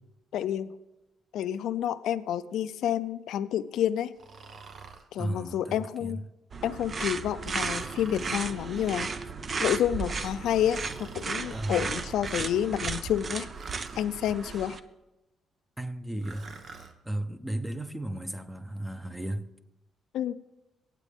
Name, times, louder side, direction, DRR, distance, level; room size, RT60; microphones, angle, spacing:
voice 1, 0.3-0.7 1.3-4.1 5.1-6.2 6.6-9.1 9.6-13.5 14.0-14.8 20.1-20.3, left 10 dB, 80° left, 0.5 m, -29 dB
Breathing, 4.1-5.1 7.4-8.4 10.7-11.4 13.5-14.0 16.2-16.9, right 4 dB, 55° right, 1.1 m, -47 dB
voice 2, 5.2-6.2 11.5-11.9 15.8-16.5 17.0-19.5, right 1 dB, 10° right, 0.9 m, -34 dB
sound 1, 6.5-14.8, right 4 dB, 40° right, 0.7 m, -34 dB
24.0 x 8.3 x 3.6 m
cardioid pair, 90°, 0 cm